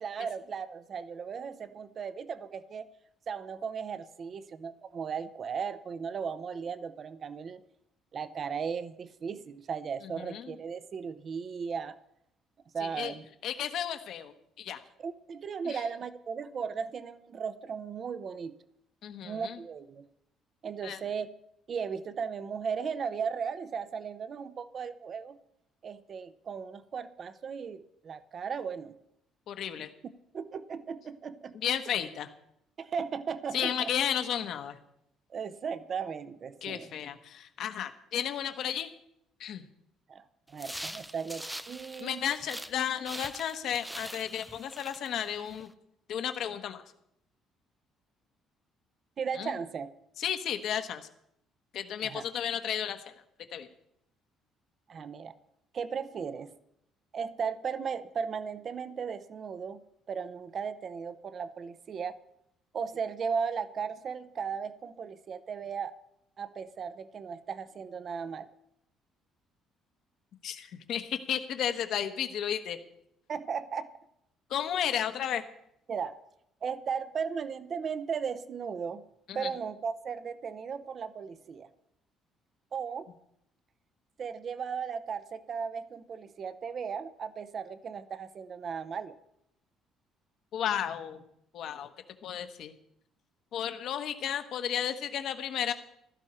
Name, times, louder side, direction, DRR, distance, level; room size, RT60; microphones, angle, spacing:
voice 1, 0.0-2.9 3.3-7.6 8.1-12.0 12.7-13.3 15.0-18.6 19.2-20.1 20.6-21.3 21.7-25.4 25.8-29.0 30.3-31.5 32.0-32.1 32.8-33.9 35.3-36.9 40.1-42.2 49.2-49.9 52.0-52.2 54.9-55.3 55.7-56.5 57.1-59.8 60.1-62.1 62.7-65.9 66.4-68.5 73.3-73.9 75.9-76.2 76.6-79.0 79.3-81.7 82.7-83.1 84.2-89.1, right 6 dB, 35° right, 13 dB, 0.7 m, -36 dB
voice 2, 10.1-10.5 12.8-13.1 13.4-14.3 14.6-14.8 15.6-15.8 19.0-19.6 20.8-21.0 29.5-29.9 31.6-32.3 33.5-34.8 36.6-38.9 39.4-39.6 42.0-45.7 46.1-46.8 49.4-49.5 50.2-51.1 51.7-53.0 53.5-53.7 70.4-72.8 74.5-75.4 79.3-79.5 90.5-91.2 91.5-91.9 92.2-92.7 93.5-95.7, left 9 dB, 55° left, 8 dB, 1.2 m, -33 dB
sound 1, 40.5-42.8 43.0-45.6, right 1 dB, 5° right, 0.5 m, -43 dB
16.0 x 13.0 x 4.4 m, 0.78 s
cardioid pair, 165°, 0 cm